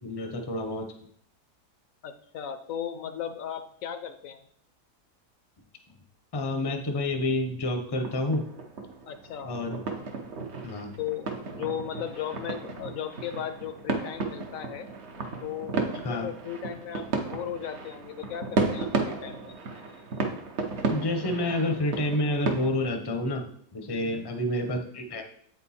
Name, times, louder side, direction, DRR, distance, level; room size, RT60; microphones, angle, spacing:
voice 1, 0.0-0.9 6.3-8.5 9.4-9.8 10.6-10.9 16.0-16.3 20.9-25.2, left 1 dB, 30° left, 4 dB, 0.5 m, -29 dB
voice 2, 2.0-4.4 9.1-9.5 11.0-14.9 15.4-19.5 23.9-24.3, left 9 dB, 70° left, 9 dB, 0.8 m, -36 dB
sound 1, 8.0-22.7, right 4 dB, 50° right, 0.9 m, -33 dB
8.1 x 4.4 x 4.2 m, 0.63 s
omnidirectional pair, 1.7 m